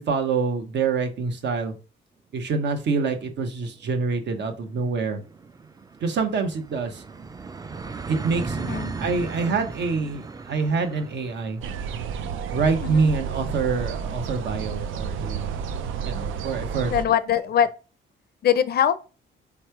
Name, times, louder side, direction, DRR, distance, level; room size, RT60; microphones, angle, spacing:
voice 1, 0.0-1.7 2.3-5.2 6.0-7.0 8.1-11.6 12.5-15.6 16.0-16.9, right 4 dB, 60° right, 1.0 m, -26 dB
sound 1, 3.6-14.9, right 4 dB, 20° right, 0.4 m, -38 dB
voice 2, 8.6-9.0 12.8-13.1 16.9-17.7 18.4-19.0, left 9 dB, 55° left, 0.4 m, -22 dB
sound 2, 11.6-17.1, right 7 dB, 80° right, 0.5 m, -31 dB
3.4 x 3.2 x 4.5 m
cardioid pair, 90°, 20 cm